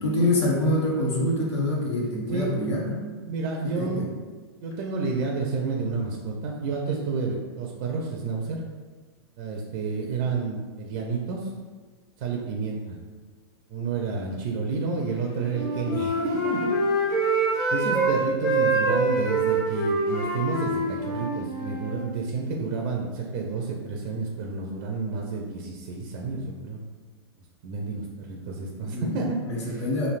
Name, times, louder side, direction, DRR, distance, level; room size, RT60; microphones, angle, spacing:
voice 1, 0.0-3.0 3.6-4.1 28.8-29.2 29.5-30.1, left 1 dB, 85° left, -2 dB, 0.9 m, -25 dB
voice 2, 3.3-4.0 4.6-8.6 9.4-11.5 12.2-13.0 13.7-16.7 17.1-26.8 27.6-29.9, right 4 dB, 40° right, 0 dB, 0.4 m, -30 dB
Wind instrument woodwind instrument, 15.4-18.1 18.4-22.0, right 2 dB, 25° left, 0.8 m, -25 dB
3.1 x 2.6 x 2.4 m, 1.4 s
hypercardioid pair, 140°, 14 cm